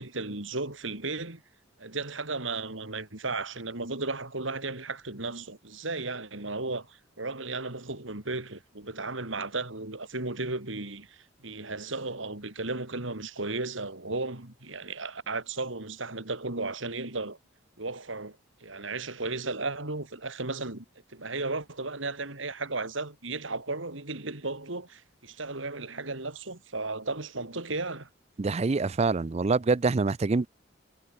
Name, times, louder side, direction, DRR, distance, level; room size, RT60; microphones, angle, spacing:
voice 1, 0.0-1.4 1.8-17.4 17.8-20.8 21.1-28.1, right 3 dB, 75° right, 3.2 m, -35 dB
voice 2, 28.4-30.5, right 3 dB, 35° right, 0.4 m, -25 dB
head